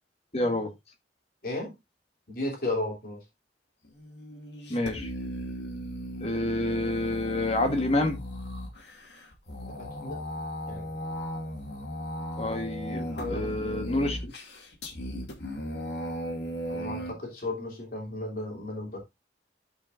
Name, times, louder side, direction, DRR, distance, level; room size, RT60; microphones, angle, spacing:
voice 1, 0.3-0.7 4.7-5.1 6.2-8.2 12.4-14.3, left 1 dB, 35° left, 1.7 m, -28 dB
voice 2, 2.3-3.2 9.7-10.2 10.7-10.9 13.1-14.1 16.7-19.0, left 2 dB, 55° left, 3.1 m, -34 dB
sound 1, 3.8-17.1, equal, 75° left, 2.5 m, -37 dB
13.5 x 5.4 x 2.6 m
head